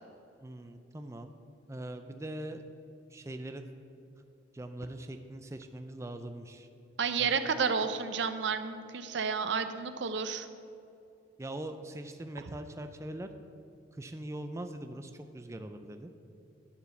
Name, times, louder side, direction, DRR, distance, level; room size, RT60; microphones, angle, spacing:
voice 1, 0.4-1.3 1.7-2.6 3.1-3.7 4.5-6.7 7.2-7.4 11.4-13.3 14.0-16.1, right 1 dB, 15° right, 7 dB, 0.4 m, -42 dB
voice 2, 7.0-10.5, right 5 dB, 60° right, 10 dB, 0.6 m, -31 dB
11.5 x 4.9 x 7.0 m, 2.6 s
head